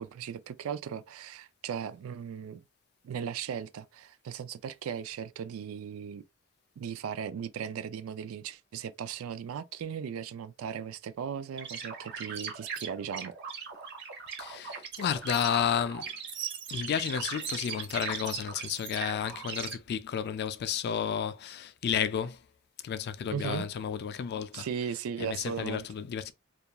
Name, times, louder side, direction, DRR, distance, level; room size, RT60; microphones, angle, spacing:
voice 1, 0.0-2.6 3.0-6.2 6.8-13.3 23.3-23.7 24.5-25.8, right 7 dB, 85° right, 0.3 m, -37 dB
sound 1, 11.6-19.7, right 6 dB, 55° right, 0.7 m, -39 dB
voice 2, 14.4-16.1 16.7-22.4 22.8-24.7 25.2-26.3, left 8 dB, 50° left, 0.3 m, -32 dB
2.4 x 2.2 x 2.8 m
head